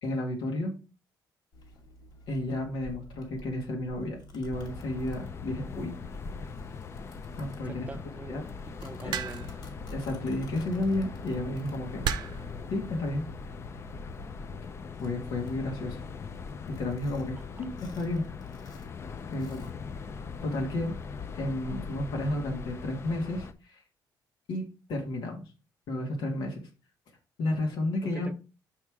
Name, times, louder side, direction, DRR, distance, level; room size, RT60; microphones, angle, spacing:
voice 1, 0.0-0.7 2.3-5.9 7.4-7.9 8.3-8.4 9.0-9.1 9.9-12.0 12.7-13.2 15.0-16.0 16.7-18.2 19.3-19.7 20.4-20.9 21.3-23.8 24.5-25.4 25.9-26.7 27.4-28.3, left 1 dB, 90° left, 1.8 m, -32 dB
Domestic sounds home sounds, 1.5-20.6, equal, 70° left, 2.3 m, -50 dB
sound 1, 4.5-23.5, left 5 dB, 35° left, 0.5 m, -41 dB
voice 2, 7.7-9.5 17.6-17.7 28.0-28.3, right 3 dB, 20° right, 0.6 m, -43 dB
sound 2, 9.1-9.6 10.9-11.1 12.0-12.5 13.5-13.8, right 8 dB, 70° right, 0.6 m, -32 dB
6.3 x 5.5 x 3.5 m
cardioid pair, 145°, 8 cm